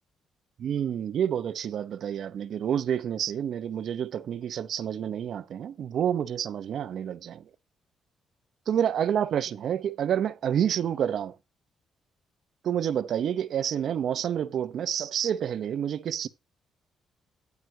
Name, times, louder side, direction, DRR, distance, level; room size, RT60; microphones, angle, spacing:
voice 1, 0.6-7.4 8.7-11.3 12.6-16.3, right 9 dB, 65° right, 0.9 m, -28 dB
9.5 x 9.4 x 2.9 m
cardioid pair, 90°, 0 cm